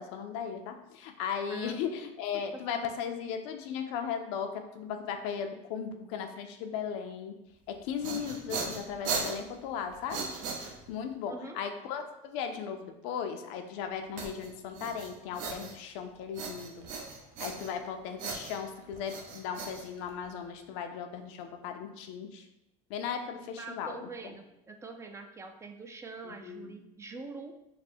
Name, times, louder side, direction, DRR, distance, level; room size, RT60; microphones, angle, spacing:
voice 1, 0.0-7.3 7.7-10.2 10.9-16.9 17.4-22.5 22.9-24.1 26.2-26.7, left 7 dB, 80° left, 6 dB, 0.5 m, -37 dB
sound 1, 7.7-11.1 14.2-16.0 16.3-17.9 18.2-20.4, right 4 dB, 60° right, 0.7 m, -38 dB
voice 2, 11.3-11.6 23.6-27.5, right 3 dB, 20° right, 5 dB, 0.3 m, -44 dB
3.2 x 2.1 x 4.2 m, 0.90 s
supercardioid pair, 115°, 15 cm